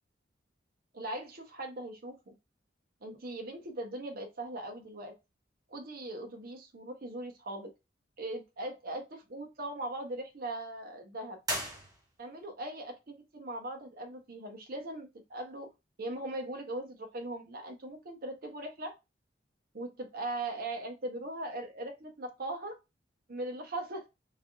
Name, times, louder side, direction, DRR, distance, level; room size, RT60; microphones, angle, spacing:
voice 1, 0.9-2.3 3.0-5.1 5.7-7.7 8.2-11.4 12.2-15.7 16.0-18.9 19.7-22.8 23.3-24.0, right 1 dB, 55° right, 3 dB, 0.8 m, -40 dB
sound 1, 11.4-12.5, right 1 dB, 20° right, 0.8 m, -37 dB
3.3 x 2.5 x 2.3 m, 0.24 s
head